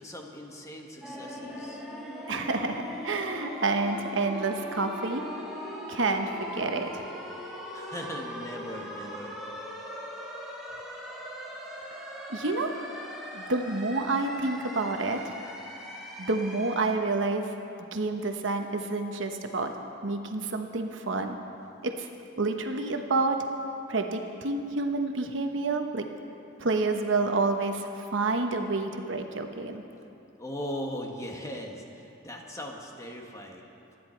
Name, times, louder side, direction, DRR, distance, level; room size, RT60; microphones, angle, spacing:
voice 1, 0.0-1.8 7.7-9.4 30.4-33.7, equal, 15° left, 1 dB, 1.5 m, -39 dB
sound 1, 1.0-17.0, equal, ahead, 2.4 m, -40 dB
voice 2, 2.3-5.2 5.9-7.0 12.3-12.7 13.3-15.3 16.2-17.5 17.9-19.7 20.0-21.4 21.8-22.1 22.4-23.4 23.9-26.1 26.6-29.8, right 3 dB, 65° right, 5 dB, 1.0 m, -29 dB
25.5 x 10.5 x 4.5 m, 2.7 s
head